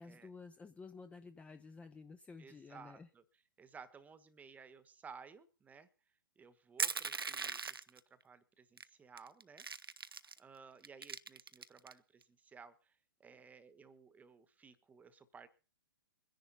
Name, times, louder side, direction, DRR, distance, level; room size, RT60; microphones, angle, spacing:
voice 1, 0.0-3.1, left 4 dB, 10° left, 10 dB, 0.7 m, -53 dB
voice 2, 2.4-3.2 3.6-5.9 6.4-9.6 10.4-12.9 13.2-15.5, right 5 dB, 15° right, 15 dB, 1.3 m, -57 dB
Crushing, 6.8-8.0 8.8-8.9 9.2-10.4 10.8-11.9, right 5 dB, 85° right, 0.7 m, -39 dB
23.5 x 10.5 x 4.1 m, 0.36 s
figure-of-eight pair, 115°, 12 cm